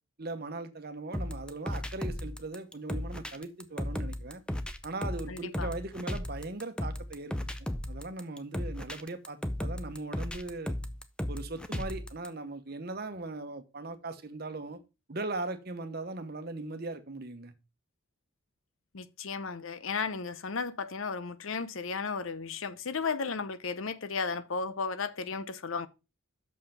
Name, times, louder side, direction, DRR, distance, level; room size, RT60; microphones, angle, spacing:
voice 1, 0.2-4.4 4.8-7.5 7.9-10.8 11.3-14.8 15.1-17.5, right 2 dB, 45° right, 1.0 m, -39 dB
sound 1, 1.1-12.3, left 1 dB, 5° left, 0.5 m, -35 dB
voice 2, 5.3-5.7 18.9-25.9, left 5 dB, 70° left, 0.7 m, -34 dB
6.5 x 5.6 x 5.7 m
head